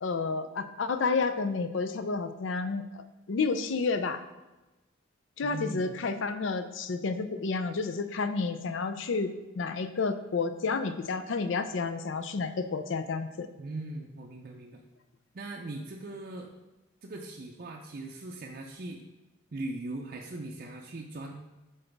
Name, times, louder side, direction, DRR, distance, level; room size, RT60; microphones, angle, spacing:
voice 1, 0.0-4.2 5.4-13.5, left 4 dB, 65° left, 10 dB, 0.5 m, -30 dB
voice 2, 5.4-5.9 13.5-14.8 15.3-16.5 17.0-19.1 19.5-21.3, right 2 dB, 45° right, 0 dB, 0.5 m, -40 dB
7.6 x 4.0 x 3.4 m, 1.1 s
head